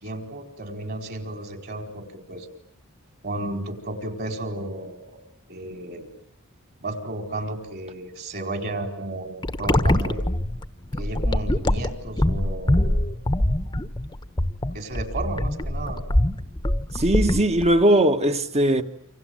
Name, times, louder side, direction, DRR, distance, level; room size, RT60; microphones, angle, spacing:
voice 1, 0.0-2.5 3.2-5.2 5.5-6.1 6.8-9.3 9.6-10.2 11.0-13.0 14.7-16.0, right 2 dB, 45° right, 4.6 m, -33 dB
sound 1, 9.4-17.8, left 1 dB, 20° left, 1.2 m, -23 dB
voice 2, 16.9-18.8, right 1 dB, 30° right, 1.6 m, -19 dB
28.5 x 26.5 x 7.9 m
head